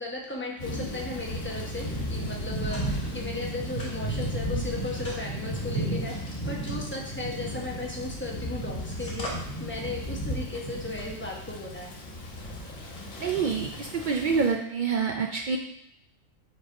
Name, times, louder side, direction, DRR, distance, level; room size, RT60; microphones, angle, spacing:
voice 1, 0.0-11.9, left 2 dB, 10° left, -2 dB, 0.9 m, -36 dB
Thunder / Rain, 0.6-14.5, equal, 80° left, 1.7 m, -34 dB
sound 1, 1.9-3.3 3.8-8.2 8.5-14.0, left 1 dB, 50° left, 1.7 m, -46 dB
voice 2, 13.2-15.6, right 5 dB, 80° right, 2 dB, 0.4 m, -27 dB
5.2 x 4.1 x 4.8 m, 0.77 s
omnidirectional pair, 1.4 m